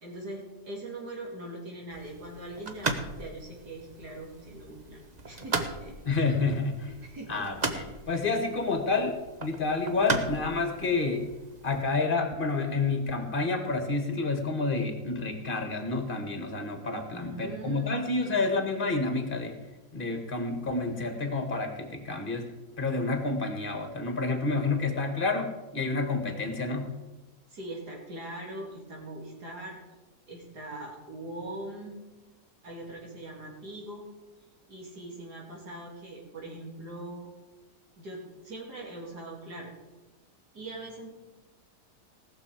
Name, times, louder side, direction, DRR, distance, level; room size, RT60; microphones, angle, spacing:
voice 1, 0.0-5.0 5.3-5.9 7.0-7.7 17.1-18.7 27.5-29.8 30.3-32.0 32.6-34.1 34.7-37.3 38.0-39.7 40.5-41.1, right 1 dB, 75° right, -2 dB, 3.5 m, -41 dB
sound 1, 1.9-11.8, right 3 dB, 30° right, 0.9 m, -37 dB
voice 2, 6.1-6.9 7.3-11.3 11.6-19.6 19.9-22.5 22.8-27.0, left 3 dB, 30° left, 5 dB, 1.8 m, -29 dB
18.5 x 6.9 x 5.0 m, 1.1 s
omnidirectional pair, 1.7 m